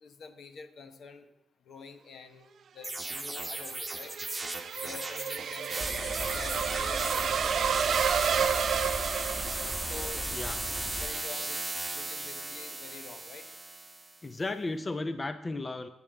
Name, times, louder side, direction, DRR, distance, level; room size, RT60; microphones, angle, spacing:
voice 1, 0.0-1.3 1.6-2.5 2.7-4.1 4.8-5.8 6.3-8.8 9.9-10.3 10.7-13.5, left 5 dB, 70° left, 9 dB, 1.0 m, -47 dB
sound 1, 2.8-14.2, right 2 dB, 15° right, 1.1 m, -37 dB
sound 2, 3.1-10.2, right 7 dB, 65° right, 0.5 m, -31 dB
sound 3, 5.8-11.1, equal, 5° left, 1.6 m, -38 dB
voice 2, 14.2-15.9, left 2 dB, 30° left, 11 dB, 0.5 m, -34 dB
8.5 x 6.9 x 7.9 m, 0.92 s
cardioid pair, 105°, 0 cm